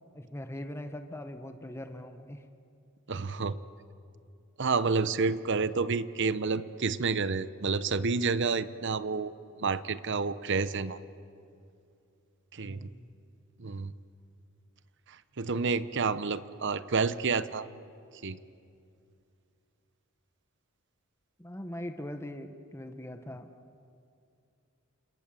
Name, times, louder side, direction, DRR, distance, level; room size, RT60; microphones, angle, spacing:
voice 1, 0.1-2.4 12.7-13.1 21.4-23.5, left 1 dB, 10° left, 7 dB, 1.1 m, -41 dB
voice 2, 3.1-3.6 4.6-9.3 9.6-11.0 12.5-12.9 13.6-13.9 15.4-17.7 18.2-18.4, right 4 dB, 55° right, 15 dB, 0.9 m, -29 dB
28.5 x 27.5 x 7.6 m, 2.5 s
head